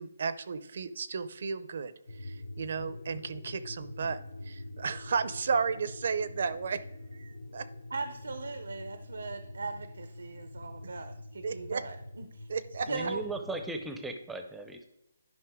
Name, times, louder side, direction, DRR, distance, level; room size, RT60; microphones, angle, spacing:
voice 1, 0.0-6.8 7.1-7.7 10.8-10.9 11.4-11.8 12.5-12.9, right 5 dB, 50° right, 14 dB, 0.5 m, -34 dB
sound 1, 2.1-13.7, left 2 dB, 70° left, 0.9 m, -45 dB
voice 2, 7.9-12.5 12.9-13.2, right 4 dB, 90° right, 9 dB, 0.8 m, -39 dB
voice 3, 12.8-14.8, right 2 dB, 5° right, 6 dB, 0.5 m, -37 dB
11.0 x 5.5 x 3.6 m, 0.86 s
hypercardioid pair, 170°, 0 cm